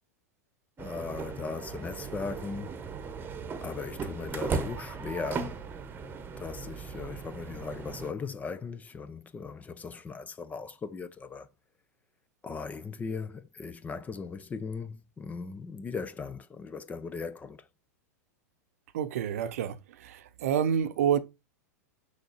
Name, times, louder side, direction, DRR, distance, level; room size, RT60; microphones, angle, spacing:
voice 1, 0.8-2.8 3.6-5.7 6.4-11.5 12.4-17.7, left 5 dB, 15° left, 0.6 m, -38 dB
sound 1, 0.8-8.1, right 5 dB, 20° right, 1.1 m, -37 dB
voice 2, 18.9-19.8 20.0-21.2, right 8 dB, 60° right, 0.9 m, -28 dB
6.5 x 5.6 x 4.5 m
figure-of-eight pair, 95°, 9 cm